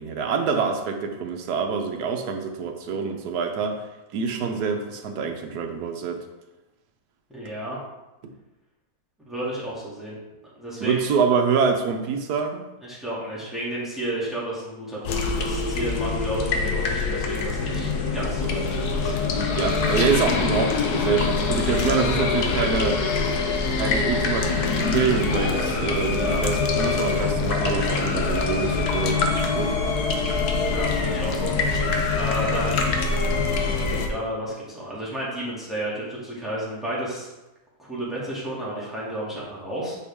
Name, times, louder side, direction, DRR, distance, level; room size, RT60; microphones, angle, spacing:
voice 1, 0.0-3.8 4.1-6.3 10.8-12.7 19.2-23.0 23.8-29.7, right 5 dB, 75° right, 4 dB, 1.4 m, -26 dB
voice 2, 7.3-7.8 9.3-10.2 10.6-11.0 12.8-19.1 26.1-26.4 26.8-26.9 30.7-33.0 33.6-37.3 37.8-40.0, right 1 dB, ahead, -8 dB, 2.5 m, -32 dB
sound 1, 15.0-34.1, left 4 dB, 75° left, 1.3 m, -24 dB
9.1 x 4.6 x 3.7 m, 1.0 s
omnidirectional pair, 1.7 m